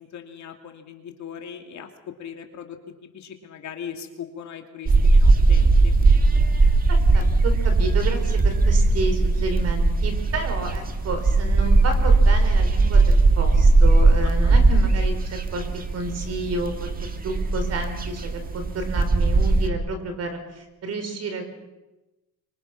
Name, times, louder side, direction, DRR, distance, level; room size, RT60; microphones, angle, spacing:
voice 1, 0.0-1.9 2.2-6.0 14.2-14.5, left 8 dB, 50° left, 5 dB, 2.6 m, -39 dB
sound 1, 4.9-19.7, right 3 dB, 25° right, 1.6 m, -19 dB
voice 2, 6.9-15.1 15.5-15.6 15.9-16.9 17.2-21.5, right 2 dB, 45° right, 7 dB, 4.3 m, -31 dB
25.0 x 25.0 x 6.0 m, 1.0 s
cardioid pair, 165°, 35 cm